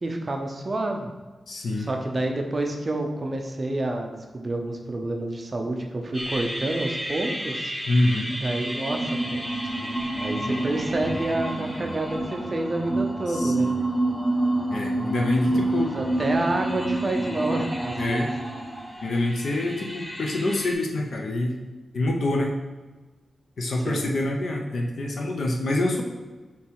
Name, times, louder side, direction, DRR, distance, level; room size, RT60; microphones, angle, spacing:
voice 1, 0.0-1.1 1.8-7.7 8.3-9.4 9.8-9.9 10.2-13.7 15.7-18.3 23.8-24.1, right 2 dB, 25° right, 2 dB, 0.6 m, -29 dB
voice 2, 1.5-1.9 7.9-8.3 13.3-13.9 14.7-15.9 18.0-18.3 19.0-21.6 21.9-22.5 23.6-26.0, left 1 dB, 55° left, 1 dB, 0.8 m, -26 dB
sound 1, 6.1-20.7, right 1 dB, 5° left, 1.2 m, -28 dB
7.0 x 3.2 x 4.6 m, 1.3 s
wide cardioid pair, 175°, 0 cm